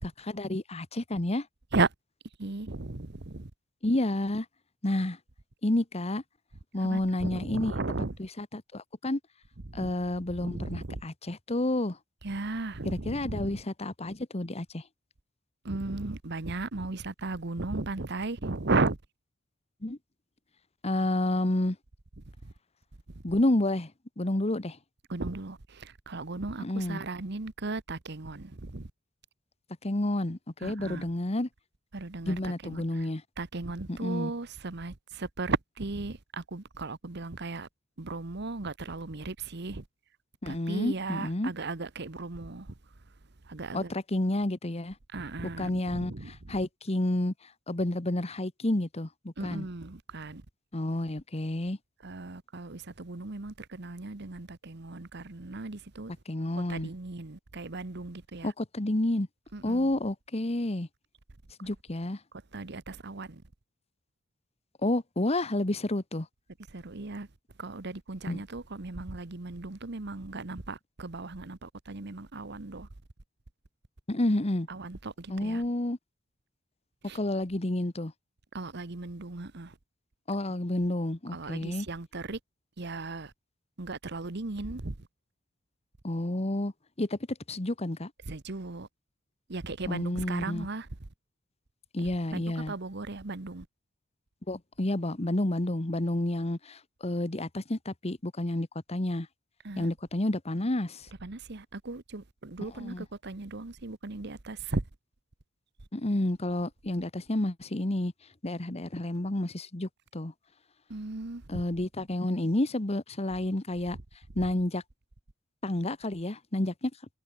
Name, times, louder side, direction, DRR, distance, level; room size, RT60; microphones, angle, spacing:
voice 1, 0.0-1.5 3.8-4.4 4.8-5.2 5.6-6.2 6.7-7.8 8.2-9.2 9.7-12.0 12.8-14.8 19.8-20.0 20.8-21.8 23.2-23.9 24.2-24.8 26.6-27.0 29.8-31.5 32.2-33.2 33.9-34.3 40.4-41.5 43.7-44.9 45.6-47.3 47.7-49.7 50.7-51.8 56.3-56.9 58.4-59.3 59.6-60.9 61.6-62.2 64.8-66.3 68.3-68.4 74.1-74.7 75.3-76.0 77.1-78.1 80.3-81.9 86.0-86.7 87.0-88.1 89.9-90.7 91.9-92.7 94.5-99.3 99.8-101.1 102.6-103.0 105.9-108.1 108.4-110.3 111.5-114.0 114.3-114.8 115.6-116.9, left 1 dB, 30° left, 1.3 m, -30 dB
voice 2, 2.4-3.5 6.8-8.1 9.7-9.9 10.4-11.0 12.2-13.5 15.6-19.0 22.4-22.5 23.1-23.2 25.1-28.9 30.6-31.1 31.9-33.1 33.4-37.7 38.0-39.8 40.5-42.7 43.5-43.9 45.1-46.6 49.4-50.4 52.0-56.1 56.7-58.5 59.5-59.9 62.5-63.4 66.7-67.3 67.6-72.9 74.7-75.6 77.0-77.2 78.5-79.7 81.3-82.4 82.8-83.3 83.8-84.9 88.3-88.9 89.5-90.9 92.0-93.7 99.6-99.9 101.2-104.8 110.9-111.4, right 3 dB, 55° right, 1.2 m, -36 dB
head